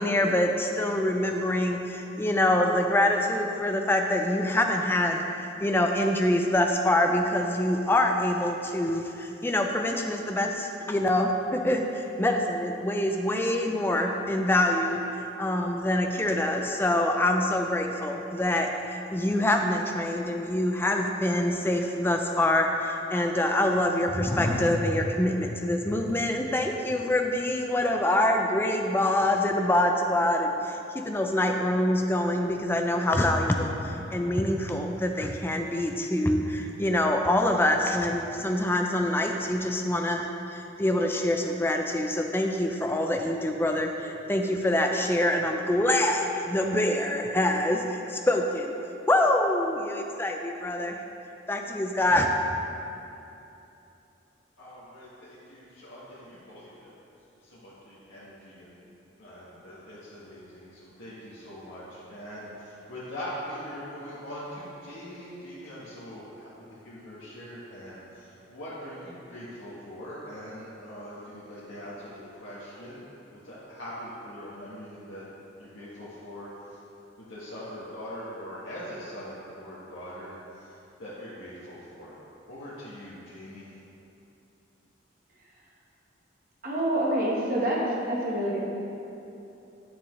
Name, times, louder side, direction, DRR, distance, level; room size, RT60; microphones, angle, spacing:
voice 1, 0.0-5.2 5.6-48.7 49.1-51.0 51.5-52.3, left 1 dB, 10° left, 3 dB, 0.4 m, -25 dB
voice 2, 54.6-56.9 57.4-58.9 59.2-75.2 75.6-76.8 77.2-82.2 82.5-83.7, equal, 85° left, -10 dB, 1.3 m, -42 dB
voice 3, 86.6-88.6, right 1 dB, 45° right, -4 dB, 1.3 m, -27 dB
7.8 x 6.7 x 3.2 m, 2.9 s
head